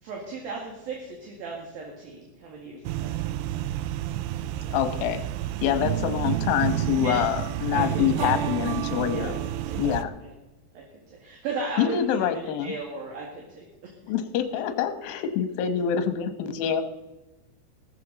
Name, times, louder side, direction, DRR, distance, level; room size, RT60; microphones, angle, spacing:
voice 1, 0.0-3.1 5.7-5.8 7.0-7.2 7.7-8.8 9.1-10.0 10.2-10.3 10.7-13.9 14.5-14.6, right 3 dB, 60° right, -1 dB, 3.6 m, -37 dB
sound 1, 2.8-10.0, right 12 dB, 80° right, 2.5 m, -29 dB
voice 2, 4.7-5.2 5.6-9.3 9.8-10.1 11.8-12.7 14.1-16.8, left 9 dB, 70° left, 8 dB, 2.4 m, -26 dB
16.0 x 14.5 x 4.1 m, 1.0 s
omnidirectional pair, 5.1 m